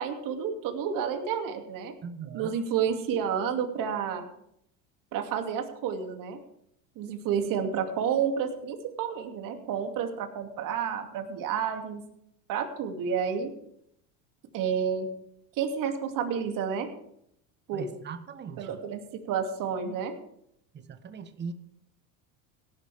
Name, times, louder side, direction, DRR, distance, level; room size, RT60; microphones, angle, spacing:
voice 1, 0.0-1.9 2.3-4.2 5.1-6.4 7.0-12.0 12.5-13.5 14.5-15.1 15.6-16.9 17.7-17.9 18.6-20.1, right 7 dB, 50° right, 4 dB, 2.6 m, -30 dB
voice 2, 2.0-2.6 17.7-18.8 20.7-21.5, right 6 dB, 25° right, 10 dB, 1.2 m, -40 dB
17.5 x 11.5 x 3.5 m, 0.72 s
hypercardioid pair, 95°, 41 cm